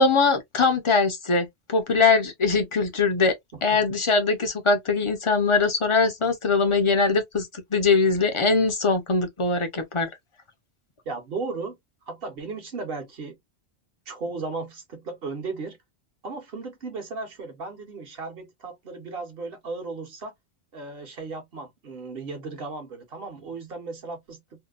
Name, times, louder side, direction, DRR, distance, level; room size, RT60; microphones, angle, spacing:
voice 1, 0.0-3.3 3.6-10.1, left 4 dB, 40° left, 0.4 m, -22 dB
voice 2, 11.0-11.8 12.1-13.4 14.1-15.8 16.2-20.3 20.7-24.4, right 3 dB, 60° right, 1.0 m, -35 dB
2.7 x 2.1 x 2.3 m
omnidirectional pair, 1.2 m